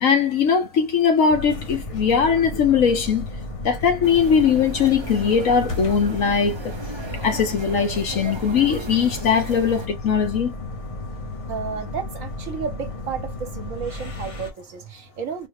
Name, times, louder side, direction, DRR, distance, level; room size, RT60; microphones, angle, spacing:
voice 1, 0.0-3.3 3.6-6.6 7.2-10.5, left 6 dB, 70° left, 1.2 m, -20 dB
sound 1, 1.3-14.5, left 2 dB, 30° left, 0.8 m, -33 dB
sound 2, 4.0-9.9, right 3 dB, 25° right, 0.6 m, -36 dB
voice 2, 11.5-15.5, right 6 dB, 70° right, 1.2 m, -32 dB
4.0 x 2.1 x 3.4 m
omnidirectional pair, 1.5 m